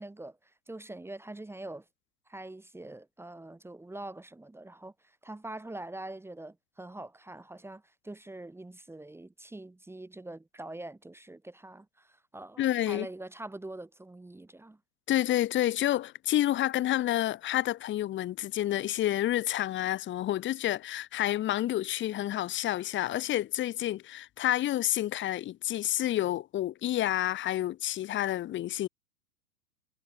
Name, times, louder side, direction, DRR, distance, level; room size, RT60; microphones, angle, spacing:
voice 1, 0.0-1.8 2.3-14.8, right 2 dB, 5° right, 3.1 m, -44 dB
voice 2, 12.6-13.1 15.1-28.9, left 13 dB, 25° left, 1.5 m, -29 dB
figure-of-eight pair, 100°, 48 cm